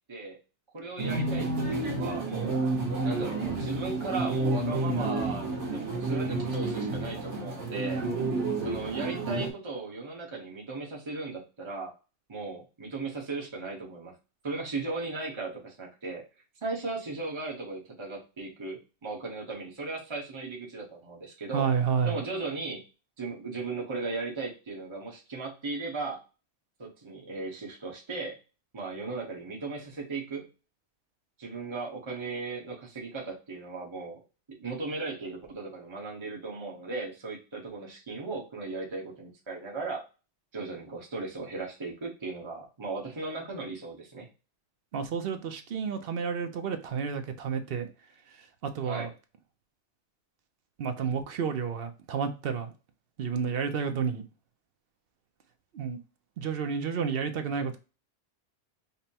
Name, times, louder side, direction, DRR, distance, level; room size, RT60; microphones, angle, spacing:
voice 1, 0.7-2.5 3.0-8.0 8.6-11.9 12.3-14.2 14.4-16.2 16.6-21.7 22.0-22.8 23.2-26.2 26.8-28.4 28.7-30.5 31.4-34.2 34.5-40.0 40.5-44.3 48.8-49.1, right 3 dB, 25° right, -2 dB, 0.9 m, -37 dB
sound 1, 1.0-9.5, right 2 dB, 85° right, 1.4 m, -30 dB
voice 2, 21.5-22.2 44.9-47.9 48.8-49.1 50.8-52.7 53.2-54.2 55.7-56.0 56.4-57.8, right 6 dB, 60° right, 8 dB, 0.8 m, -30 dB
5.2 x 2.1 x 2.8 m, 0.31 s
omnidirectional pair, 1.2 m